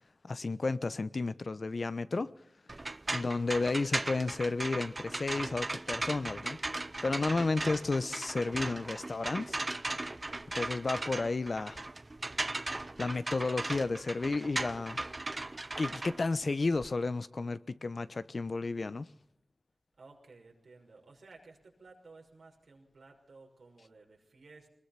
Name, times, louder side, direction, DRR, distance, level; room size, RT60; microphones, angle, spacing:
voice 1, 0.2-2.3 3.1-6.6 7.0-9.6 10.5-11.8 13.0-15.1 15.8-19.1, left 3 dB, 60° left, 1.0 m, -32 dB
sound 1, 2.7-16.9, right 2 dB, 40° right, 0.9 m, -37 dB
voice 2, 20.0-24.7, right 3 dB, 85° right, 5.9 m, -56 dB
22.5 x 21.0 x 5.9 m
cardioid pair, 50°, 0 cm